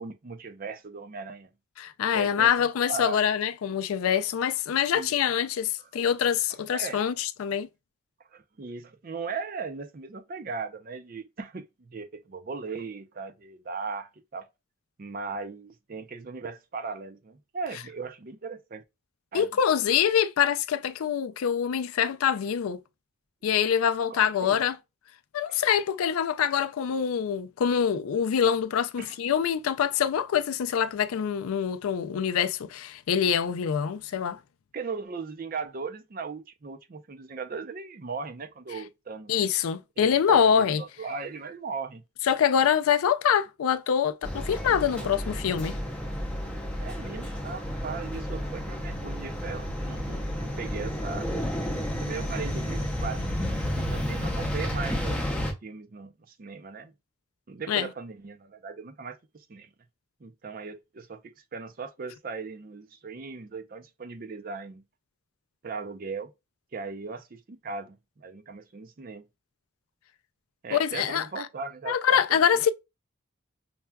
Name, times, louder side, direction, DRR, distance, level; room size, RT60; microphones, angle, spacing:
voice 1, 0.0-1.5 2.1-3.2 4.9-5.1 5.8-5.9 6.7-7.1 8.3-14.5 15.0-18.8 19.3-19.5 24.1-24.6 25.5-25.6 29.0-29.2 34.7-39.3 40.0-42.0 44.9-45.2 46.8-51.3 51.9-56.9 57.5-59.7 60.2-61.2 61.5-64.8 65.6-66.3 66.7-69.2 70.6-72.0 72.3-72.6, right 4 dB, 40° right, 0.4 m, -38 dB
voice 2, 1.8-7.7 19.3-22.8 23.4-24.8 25.3-34.4 39.3-40.8 42.2-45.8 57.7-57.9 70.7-71.5 71.9-72.7, left 8 dB, 80° left, 0.4 m, -25 dB
sound 1, 44.2-55.5, equal, 5° left, 0.6 m, -31 dB
5.5 x 2.2 x 2.2 m
head